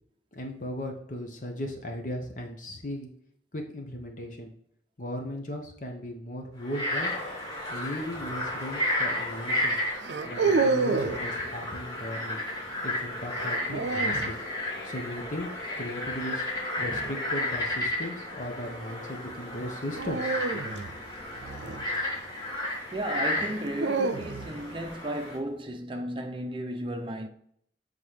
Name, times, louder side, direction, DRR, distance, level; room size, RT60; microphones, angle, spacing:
voice 1, 0.3-3.1 3.5-4.5 5.0-7.1 7.7-9.8 10.2-12.4 12.8-14.4 14.8-15.5 15.8-16.5 16.8-20.8, equal, 45° left, 1.0 m, -37 dB
Frog, 6.6-25.4, left 1 dB, 20° left, 2.1 m, -33 dB
sound 1, 7.2-10.6 11.0-17.7, left 3 dB, 80° left, 0.8 m, -46 dB
sound 2, 8.1-8.5 10.0-11.3 13.3-14.3 16.8-17.2 19.9-22.3 23.4-24.7, right 4 dB, 85° right, 0.5 m, -29 dB
voice 2, 22.9-27.3, right 1 dB, 30° right, 0.7 m, -34 dB
7.7 x 3.8 x 3.2 m
head